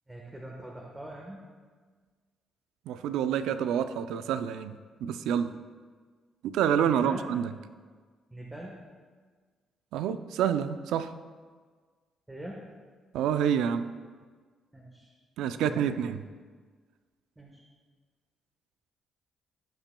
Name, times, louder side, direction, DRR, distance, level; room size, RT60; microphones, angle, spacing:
voice 1, 0.1-1.4 6.8-7.2 8.3-8.8 12.3-12.6 14.7-15.1 15.6-16.0 17.4-17.6, right 1 dB, 10° right, -2 dB, 1.2 m, -42 dB
voice 2, 2.9-5.5 6.4-7.5 9.9-11.1 13.1-13.9 15.4-16.2, right 8 dB, 90° right, 11 dB, 0.4 m, -28 dB
17.0 x 5.8 x 2.2 m, 1.5 s
cardioid pair, 90°, 0 cm